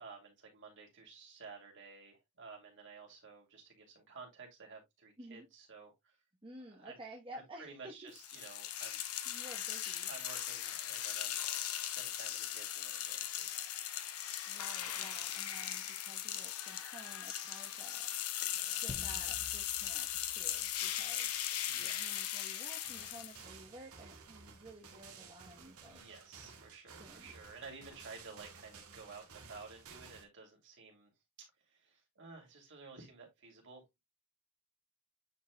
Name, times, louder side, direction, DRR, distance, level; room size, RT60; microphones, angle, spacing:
voice 1, 0.0-6.2 6.7-7.0 7.3-9.0 10.1-11.4 11.9-13.5 21.6-22.1 25.8-31.1 31.4-34.0, right 4 dB, 60° right, 2.8 m, -53 dB
voice 2, 6.4-8.1 8.6-8.7 9.3-10.1 14.5-18.1 18.8-21.3 21.8-26.1 27.0-27.3, right 1 dB, 25° right, 1.1 m, -53 dB
sound 1, 8.2-23.4, left 11 dB, 85° left, 0.9 m, -39 dB
sound 2, 18.9-21.7, left 3 dB, 20° left, 0.3 m, -51 dB
sound 3, 22.8-30.2, right 5 dB, 90° right, 1.7 m, -55 dB
9.3 x 4.5 x 2.2 m
head